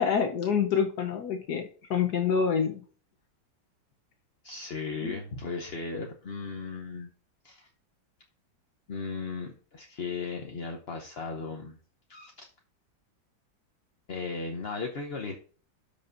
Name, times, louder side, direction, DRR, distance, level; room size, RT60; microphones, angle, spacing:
voice 1, 0.0-2.8 5.0-5.2, left 6 dB, 65° left, 5 dB, 1.3 m, -27 dB
voice 2, 4.4-7.1 7.4-7.7 8.9-11.8 12.1-12.5 14.1-15.4, left 4 dB, 45° left, 2 dB, 0.8 m, -36 dB
13.0 x 5.2 x 2.6 m, 0.41 s
omnidirectional pair, 2.1 m